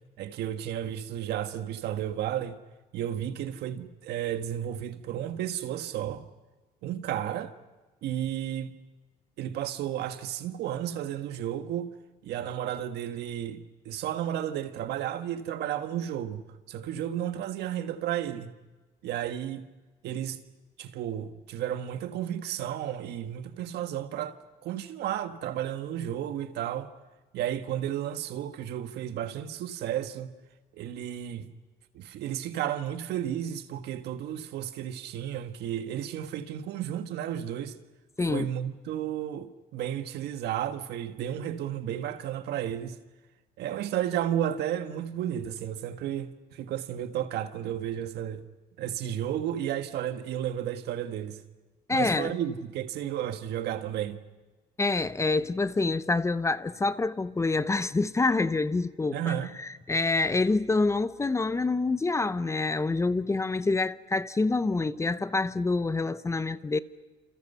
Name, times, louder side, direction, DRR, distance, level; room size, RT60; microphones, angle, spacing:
voice 1, 0.2-2.6 2.9-6.2 6.8-7.5 8.0-8.7 9.4-11.9 12.2-18.5 19.0-19.7 20.0-20.4 20.8-26.9 27.3-30.3 30.7-31.5 31.9-37.7 38.3-43.0 43.6-48.4 48.8-51.4 51.9-54.2 59.1-59.5, right 10 dB, 75° right, 1.6 m, -33 dB
voice 2, 51.9-52.3 54.8-59.3 59.6-66.8, left 3 dB, 15° left, 0.7 m, -27 dB
28.5 x 28.0 x 5.6 m
cardioid pair, 110°, 17 cm